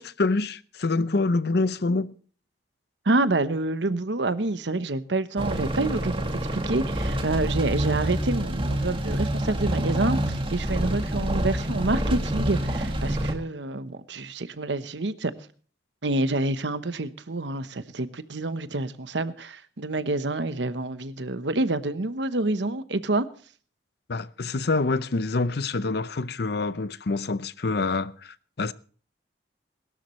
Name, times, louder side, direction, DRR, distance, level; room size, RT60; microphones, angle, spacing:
voice 1, 0.0-2.1 24.1-28.7, left 3 dB, 65° left, 0.7 m, -26 dB
voice 2, 3.0-15.3 16.0-23.3, right 2 dB, 85° right, 1.0 m, -27 dB
sound 1, 5.4-13.3, right 1 dB, 30° right, 2.0 m, -27 dB
21.5 x 12.5 x 3.2 m
head